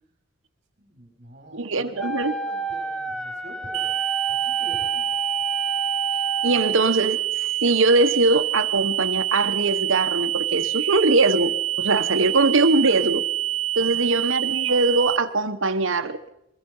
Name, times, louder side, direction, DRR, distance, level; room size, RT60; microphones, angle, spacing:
voice 1, 0.8-3.9 4.3-5.2 13.8-14.1, right 1 dB, 35° right, 2 dB, 5.8 m, -45 dB
voice 2, 1.5-2.3 6.4-7.2 7.6-13.2 13.7-16.3, right 2 dB, 65° right, 8 dB, 1.3 m, -21 dB
Wind instrument woodwind instrument, 2.0-6.8, right 2 dB, 5° left, 0.8 m, -30 dB
sound 1, 3.7-15.2, right 14 dB, 90° right, 0.8 m, -26 dB
22.5 x 21.0 x 5.6 m, 0.81 s
head